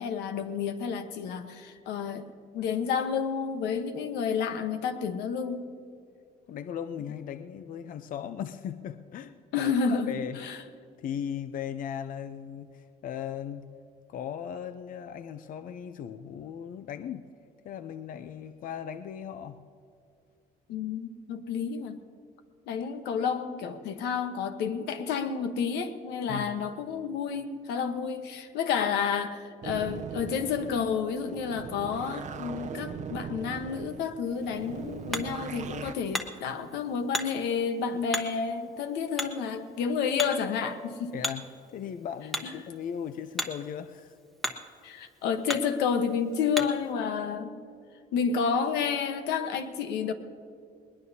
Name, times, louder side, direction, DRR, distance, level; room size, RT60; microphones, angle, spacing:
voice 1, 0.0-2.3 2.5-5.7 9.5-10.6 20.7-22.0 22.7-41.1 42.4-42.5 44.8-47.5 48.1-50.1, left 6 dB, 85° left, 8 dB, 1.1 m, -30 dB
voice 2, 6.5-10.4 11.0-13.7 14.1-17.3 17.6-19.6 26.3-26.5 41.1-44.2, left 8 dB, 55° left, 10 dB, 0.6 m, -37 dB
sound 1, 29.6-35.9, right 7 dB, 45° right, 0.7 m, -40 dB
Hammer, 34.3-46.9, equal, ahead, 1.1 m, -39 dB
21.0 x 20.0 x 2.8 m, 2.4 s
cardioid pair, 110°, 17 cm